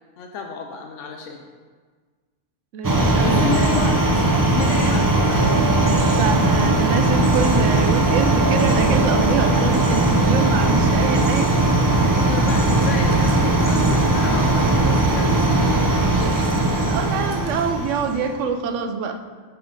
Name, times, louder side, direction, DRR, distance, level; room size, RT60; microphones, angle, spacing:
voice 1, 0.2-1.5 3.2-6.3 12.1-15.7 16.2-16.7, left 5 dB, 90° left, 3 dB, 1.0 m, -31 dB
voice 2, 2.7-3.7 4.8-4.9 6.2-11.5 16.7-19.2, right 6 dB, 85° right, 8 dB, 1.0 m, -25 dB
sound 1, 2.8-18.3, right 2 dB, 30° right, 0.4 m, -18 dB
5.9 x 5.4 x 5.0 m, 1.5 s
omnidirectional pair, 1.3 m